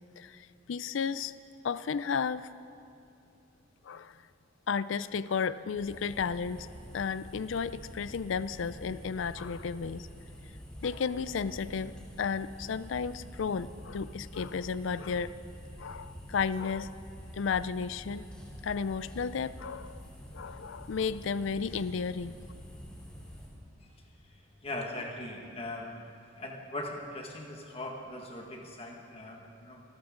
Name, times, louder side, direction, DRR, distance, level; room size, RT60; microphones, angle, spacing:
voice 1, 0.2-1.3 1.6-2.5 3.9-4.2 4.7-6.7 6.9-10.1 10.8-15.4 15.8-17.0 17.3-18.2 18.6-20.0 20.3-22.3, left 6 dB, 70° left, 16 dB, 0.4 m, -33 dB
sound 1, 5.7-23.5, equal, 5° left, 3.1 m, -47 dB
voice 2, 24.3-25.9 26.3-29.8, left 1 dB, 30° left, 1 dB, 1.7 m, -40 dB
27.0 x 13.0 x 3.8 m, 2.6 s
head